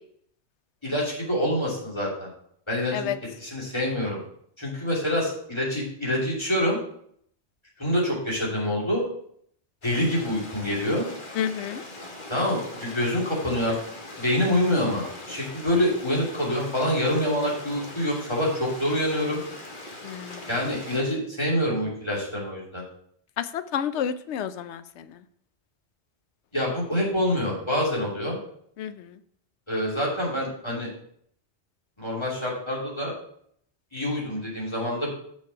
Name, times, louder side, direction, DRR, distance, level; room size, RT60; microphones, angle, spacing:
voice 1, 0.8-2.3 2.7-3.1 3.4-4.2 4.6-6.8 7.8-9.0 9.8-11.1 12.3-13.8 14.2-19.4 20.5-22.8 26.5-28.4 29.7-30.9 32.0-33.1 33.9-35.1, left 1 dB, 25° left, -5 dB, 3.0 m, -26 dB
Stream, 9.8-21.0, left 2 dB, 50° left, 1.6 m, -41 dB
voice 2, 11.4-11.8 20.0-20.5 23.4-25.2 28.8-29.2, left 9 dB, 85° left, 12 dB, 0.9 m, -30 dB
6.6 x 5.8 x 5.7 m, 0.65 s
omnidirectional pair, 1.1 m